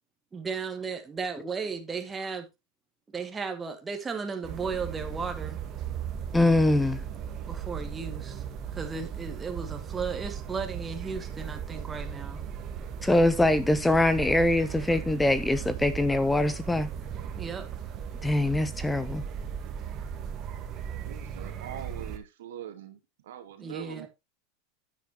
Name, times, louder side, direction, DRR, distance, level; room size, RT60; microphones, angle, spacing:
voice 1, 0.3-2.5 3.1-5.6 7.5-8.4 8.7-12.5 17.4-18.0 23.6-24.1, right 5 dB, 15° right, 2.2 m, -35 dB
sound 1, 4.4-22.2, right 8 dB, 35° right, 1.9 m, -37 dB
voice 2, 6.3-7.0 13.0-16.9 18.2-19.2, left 1 dB, 5° left, 0.8 m, -23 dB
voice 3, 21.1-23.0 23.3-24.1, right 10 dB, 85° right, 2.4 m, -42 dB
9.8 x 9.4 x 3.0 m
supercardioid pair, 135°, 0 cm